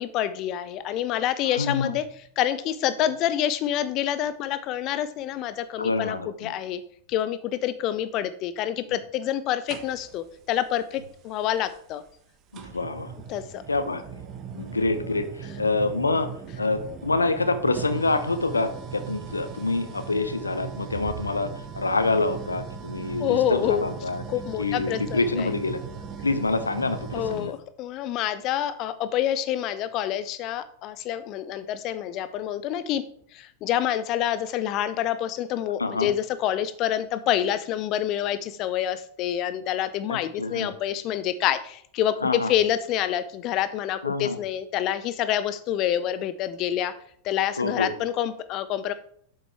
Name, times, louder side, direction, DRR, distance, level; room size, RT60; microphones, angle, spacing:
voice 1, 0.0-2.0 2.4-6.8 7.1-12.0 13.3-13.6 23.2-23.9 24.3-25.5 27.1-33.0 33.3-46.9 47.2-48.9, left 11 dB, 40° left, 13 dB, 0.4 m, -27 dB
voice 2, 1.6-1.9 5.8-6.5 12.5-13.1 13.7-14.0 14.6-15.3 15.6-16.3 16.6-21.5 21.7-24.2 24.6-25.8 26.2-27.5 35.8-36.1 40.1-40.7 42.2-42.5 44.0-44.4 47.6-47.9, left 3 dB, 80° left, 11 dB, 0.7 m, -26 dB
sound 1, 9.7-10.3 11.7-11.8 12.5-27.6, right 7 dB, 35° right, 1.0 m, -38 dB
7.9 x 7.4 x 3.4 m, 0.64 s
figure-of-eight pair, 90°, 0 cm